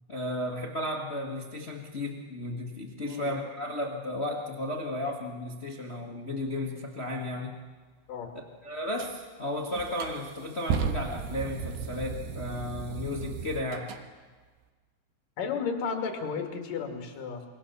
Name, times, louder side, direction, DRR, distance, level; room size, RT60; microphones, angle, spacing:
voice 1, 0.1-7.5 8.3-13.9, left 1 dB, 85° left, 1 dB, 0.5 m, -34 dB
sound 1, 9.0-9.1 9.7-14.0, right 6 dB, 85° right, 3.4 m, -35 dB
voice 2, 15.4-17.5, left 5 dB, 60° left, 4 dB, 3.9 m, -33 dB
26.5 x 22.5 x 7.0 m, 1.4 s
omnidirectional pair, 4.6 m